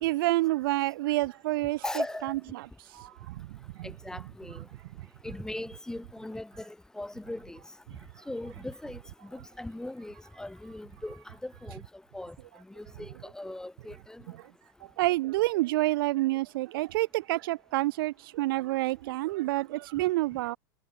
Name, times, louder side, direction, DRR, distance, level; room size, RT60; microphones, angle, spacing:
voice 1, 0.0-1.8 2.2-2.6 2.9-3.9 15.0-20.6, right 18 dB, 70° right, 0.6 m, -28 dB
voice 2, 1.8-2.3 3.8-4.7 5.2-7.6 8.3-11.8 12.1-12.4 12.8-14.2, left 1 dB, 5° left, 2.1 m, -39 dB
supercardioid pair, 120°, 12 cm